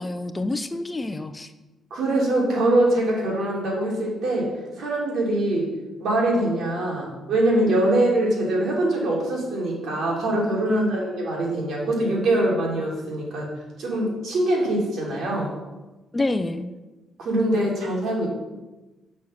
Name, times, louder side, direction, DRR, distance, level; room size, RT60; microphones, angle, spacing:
voice 1, 0.0-1.5 10.7-11.0 16.1-16.7, left 2 dB, 20° left, 10 dB, 0.5 m, -27 dB
voice 2, 1.9-5.7 6.0-13.5 13.8-15.5 17.2-18.3, right 1 dB, 70° right, -3 dB, 3.2 m, -23 dB
6.4 x 6.3 x 7.2 m, 1.1 s
cardioid pair, 90°, 0 cm